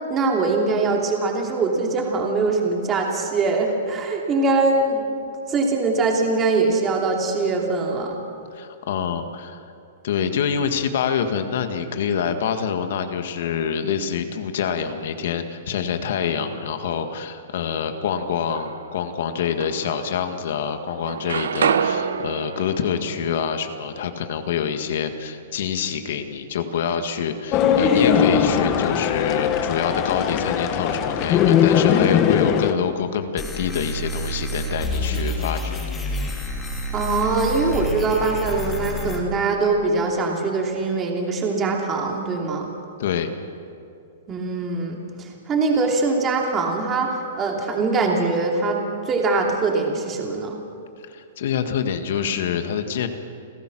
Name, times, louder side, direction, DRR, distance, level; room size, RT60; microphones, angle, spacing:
voice 1, 0.1-5.1 5.5-8.1 36.9-42.7 44.3-50.6, right 3 dB, 20° right, 0 dB, 2.8 m, -22 dB
voice 2, 8.5-9.6 10.0-36.4 43.0-43.3 51.1-53.1, left 7 dB, 60° left, 7 dB, 1.8 m, -26 dB
sound 1, 18.2-19.0 19.6-20.6 20.9-24.8, right 7 dB, 90° right, 1.0 m, -28 dB
sound 2, 27.5-32.7, left 8 dB, 30° left, 1.2 m, -19 dB
sound 3, 33.4-39.2, equal, 10° left, 2.8 m, -28 dB
29.0 x 16.0 x 6.3 m, 2.5 s
hypercardioid pair, 155°, 0 cm